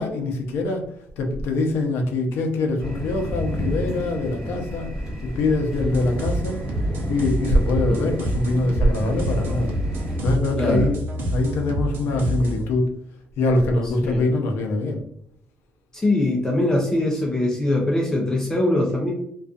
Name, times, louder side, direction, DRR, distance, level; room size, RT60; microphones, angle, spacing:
voice 1, 0.0-4.9 5.2-6.6 7.1-9.7 10.2-11.0 11.3-12.9 13.4-15.0, left 2 dB, 80° left, 3 dB, 0.6 m, -23 dB
sound 1, 2.8-10.2, equal, 10° right, 1.1 m, -31 dB
sound 2, 5.8-12.7, right 1 dB, 60° right, 0.7 m, -28 dB
voice 2, 10.6-10.9 14.0-14.2 15.9-19.1, left 1 dB, 15° left, -1 dB, 0.5 m, -22 dB
2.6 x 2.3 x 2.3 m, 0.70 s
cardioid pair, 125°, 4 cm